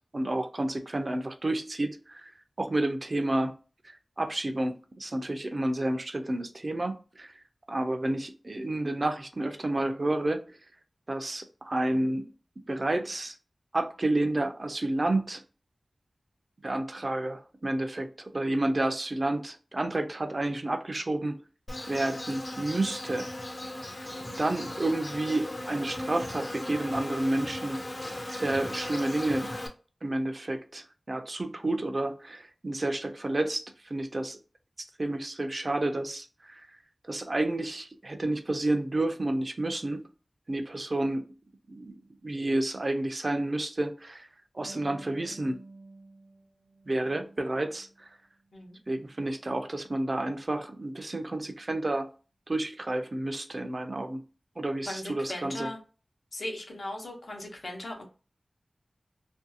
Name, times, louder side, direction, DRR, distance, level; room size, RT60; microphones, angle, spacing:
voice 1, 0.1-2.3 2.6-3.5 3.8-7.3 7.7-10.5 11.1-12.3 12.7-13.4 13.7-15.4 16.6-21.4 21.9-23.3 24.3-27.8 28.3-29.5 30.0-34.4 35.0-36.6 37.0-40.0 40.5-41.2 41.7-44.3 44.5-45.6 46.9-48.1 48.9-52.1 52.5-54.2 54.6-55.7, right 2 dB, 45° right, 0.4 m, -30 dB
Insect, 21.7-29.7, left 1 dB, 35° left, 0.5 m, -37 dB
Harp, 44.6-48.0 48.4-49.4, right 2 dB, 85° right, 0.7 m, -52 dB
voice 2, 54.9-55.8 56.3-58.0, left 1 dB, 75° left, 0.7 m, -38 dB
2.5 x 2.3 x 2.6 m
wide cardioid pair, 80°, 0 cm